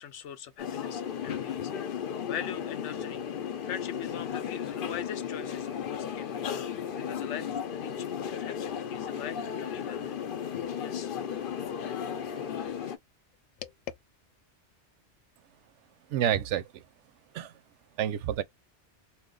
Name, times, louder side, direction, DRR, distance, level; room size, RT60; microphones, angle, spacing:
voice 1, 0.0-3.3 3.6-10.3 10.8-11.1 11.6-12.1 13.6-13.7, left 9 dB, 85° left, 1.0 m, -42 dB
sound 1, 0.6-13.0, left 8 dB, 55° left, 0.7 m, -35 dB
voice 2, 16.1-16.8 17.3-17.5 18.0-18.4, right 10 dB, 85° right, 0.9 m, -29 dB
2.9 x 2.3 x 3.7 m
omnidirectional pair, 1.2 m